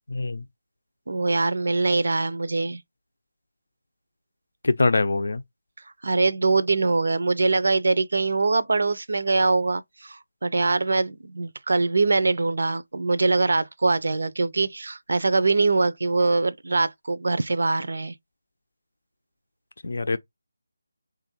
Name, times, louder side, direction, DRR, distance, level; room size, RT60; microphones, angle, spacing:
voice 1, 0.1-0.4 4.6-5.4 19.8-20.2, left 3 dB, 65° left, 0.5 m, -23 dB
voice 2, 1.1-2.8 6.0-18.1, right 3 dB, 65° right, 0.5 m, -23 dB
3.1 x 2.5 x 4.3 m
figure-of-eight pair, 160°, 0 cm